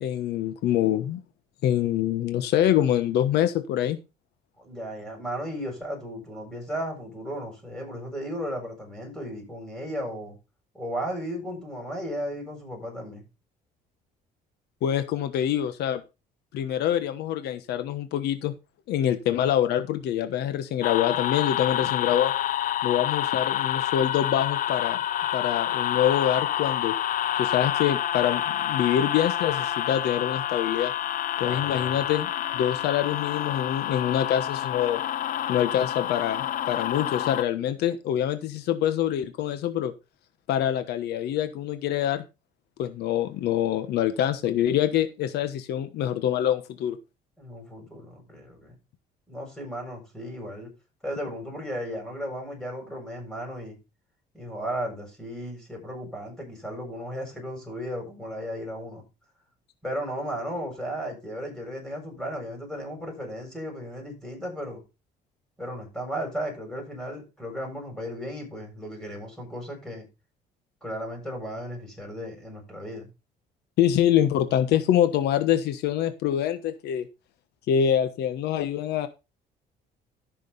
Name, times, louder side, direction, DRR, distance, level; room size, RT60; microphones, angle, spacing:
voice 1, 0.0-1.2 1.6-4.0 14.8-16.0 16.5-18.5 18.9-22.3 22.8-25.0 25.3-26.9 27.4-30.9 31.4-32.3 32.5-35.0 35.5-39.9 40.5-42.2 42.8-47.0 73.8-77.1 77.7-79.1, left 10 dB, 80° left, 1.2 m, -25 dB
voice 2, 4.6-10.4 10.7-13.2 31.4-32.0 47.4-48.8 49.3-50.7 51.0-53.8 54.3-59.0 59.8-64.8 65.6-70.1 70.8-73.1, equal, ahead, 7.6 m, -35 dB
sound 1, 20.8-37.4, left 11 dB, 55° left, 0.5 m, -28 dB
14.0 x 6.2 x 4.1 m
cardioid pair, 110°, 17 cm